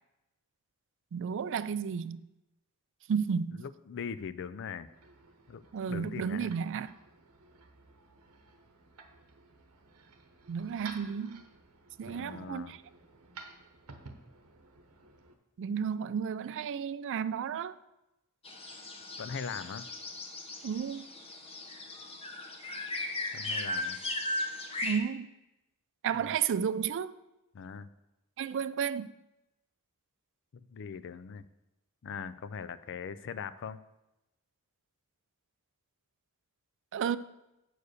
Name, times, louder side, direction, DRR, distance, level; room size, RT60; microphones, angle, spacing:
voice 1, 1.1-2.2 3.1-3.7 5.7-6.9 10.5-11.4 12.0-12.8 15.6-17.8 20.6-21.0 24.8-25.3 26.0-27.2 28.4-29.1 36.9-37.2, right 7 dB, 55° right, 0.4 m, -32 dB
voice 2, 3.5-4.9 5.5-5.6 5.9-6.5 12.0-12.7 19.2-19.9 23.3-24.0 26.3-26.4 27.5-27.9 30.5-31.5 32.0-33.8, left 6 dB, 55° left, 0.4 m, -40 dB
sound 1, 4.8-15.3, right 4 dB, 90° right, 1.0 m, -54 dB
sound 2, 18.4-25.0, left 2 dB, 25° left, 1.1 m, -37 dB
8.1 x 4.7 x 6.5 m
head